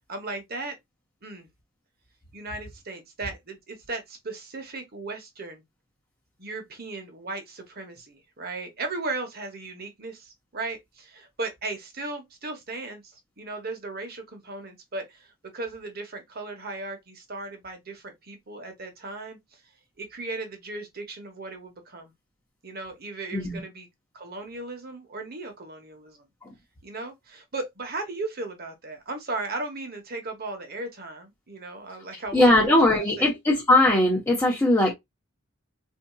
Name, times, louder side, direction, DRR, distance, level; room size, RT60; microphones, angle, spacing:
voice 1, 0.1-0.8 1.2-1.5 2.3-5.6 6.4-19.6 20.0-22.1 22.6-23.9 24.1-26.3 26.8-33.3, right 3 dB, 50° right, 1.0 m, -36 dB
voice 2, 32.3-34.9, left 1 dB, 15° left, 0.9 m, -20 dB
4.3 x 2.7 x 2.3 m
head